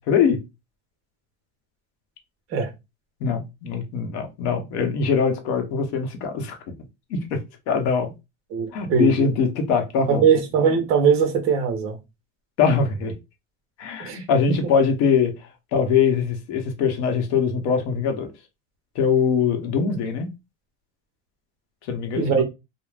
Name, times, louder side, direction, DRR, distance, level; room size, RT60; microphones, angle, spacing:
voice 1, 0.1-0.4 3.2-6.6 7.1-7.4 7.7-8.1 8.7-10.3 12.6-13.1 13.8-15.3 15.7-18.3 18.9-20.3 21.9-22.4, left 6 dB, 65° left, 0.8 m, -22 dB
voice 2, 8.5-9.3 10.1-12.0 14.0-14.2 22.2-22.4, right 6 dB, 40° right, 0.7 m, -20 dB
2.4 x 2.0 x 3.2 m
cardioid pair, 165°, 36 cm